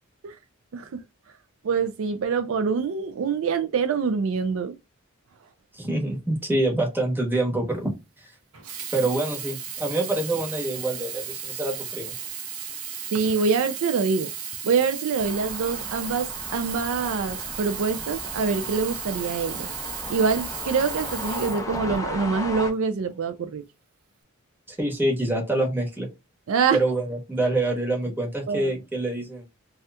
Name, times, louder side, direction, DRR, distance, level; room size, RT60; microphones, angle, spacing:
voice 1, 1.6-4.7 13.1-14.3 14.6-19.7 20.1-23.6 26.5-26.8 28.5-28.7, right 5 dB, 65° right, 0.4 m, -25 dB
voice 2, 5.7-7.9 8.9-12.1 24.7-26.1 26.7-29.4, right 2 dB, 10° right, 1.0 m, -26 dB
Sink (filling or washing), 8.5-22.3 23.0-23.1, right 8 dB, 90° right, 0.8 m, -35 dB
sound 1, 15.2-22.7, left 2 dB, 15° left, 0.5 m, -36 dB
2.8 x 2.4 x 3.2 m
head